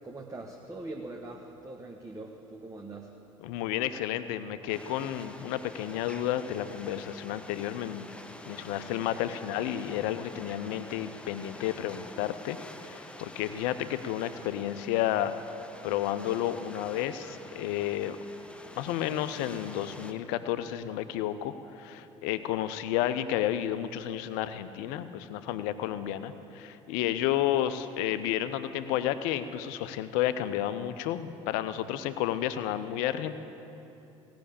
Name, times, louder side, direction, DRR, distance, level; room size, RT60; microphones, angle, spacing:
voice 1, 0.0-3.2 18.0-18.1, right 2 dB, 20° right, 2 dB, 1.0 m, -42 dB
voice 2, 3.4-8.1 8.5-12.6 12.9-15.3 15.8-18.2 18.8-33.3, left 12 dB, 55° left, 12 dB, 0.6 m, -31 dB
sound 1, 4.7-20.1, left 2 dB, 5° left, 0.9 m, -47 dB
17.0 x 6.1 x 8.4 m, 2.9 s
figure-of-eight pair, 60°, 16 cm